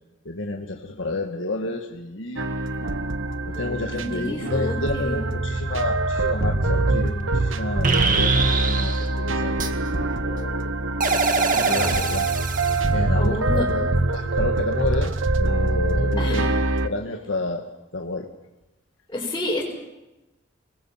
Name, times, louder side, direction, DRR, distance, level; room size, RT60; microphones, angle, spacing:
voice 1, 0.2-2.4 3.5-10.7 11.5-12.3 12.9-15.1 15.4-16.4 16.8-17.6 17.9-18.3, left 2 dB, 75° left, 2 dB, 1.8 m, -30 dB
sound 1, 2.4-16.9, right 2 dB, 85° right, 1.3 m, -24 dB
voice 2, 3.3-5.3 13.1-13.7 16.2-16.6 19.1-19.6, left 1 dB, 20° left, -7 dB, 5.7 m, -30 dB
sound 2, 7.1-7.2 7.8-9.1 9.6-9.7 11.0-12.8, right 4 dB, 45° right, 1.9 m, -23 dB
29.0 x 21.0 x 5.9 m, 1.0 s
head